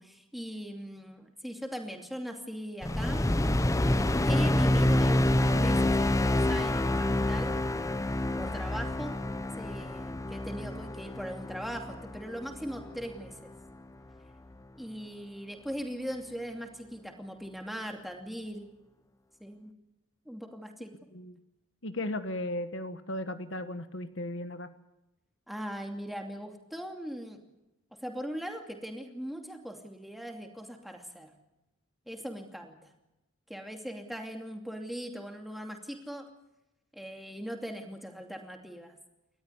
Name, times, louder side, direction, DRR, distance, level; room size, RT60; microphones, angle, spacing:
voice 1, 0.0-3.2 4.3-7.5 8.4-9.2 9.6-13.4 14.7-18.7 19.4-19.7 20.3-20.9 25.5-27.4 28.0-31.3 32.1-32.9 33.5-36.3 36.9-38.9, equal, ahead, 2 dB, 2.6 m, -40 dB
sound 1, 2.8-13.3, left 1 dB, 15° left, 0.7 m, -27 dB
voice 2, 21.8-24.7, left 1 dB, 65° left, 10 dB, 1.3 m, -36 dB
30.0 x 13.5 x 9.8 m, 0.95 s
head